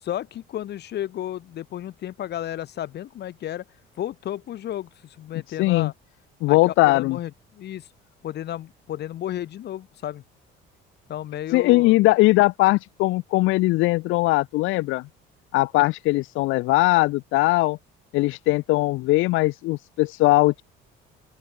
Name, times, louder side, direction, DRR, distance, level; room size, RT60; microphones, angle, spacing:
voice 1, 0.0-3.6 4.0-5.9 6.5-7.9 8.2-10.2 11.1-11.9, left 12 dB, 55° left, 6.6 m, -33 dB
voice 2, 5.6-5.9 6.4-7.2 11.5-15.1 15.5-17.8 18.1-20.6, left 20 dB, 75° left, 1.0 m, -20 dB
open air
cardioid pair, 125°, 21 cm